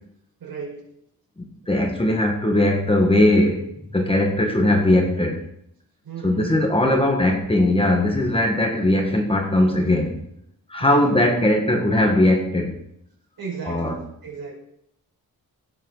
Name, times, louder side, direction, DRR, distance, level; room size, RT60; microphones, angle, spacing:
voice 1, 0.4-0.8 1.7-2.0 6.0-6.5 6.8-7.1 10.8-11.2 11.4-11.7 13.4-14.5, right 5 dB, 75° right, 5.3 m, -35 dB
voice 2, 1.7-3.7 3.9-5.5 6.2-10.2 10.7-12.8 13.6-14.0, left 1 dB, 15° left, 1.6 m, -19 dB
17.0 x 7.8 x 4.0 m
wide cardioid pair, 150°, 36 cm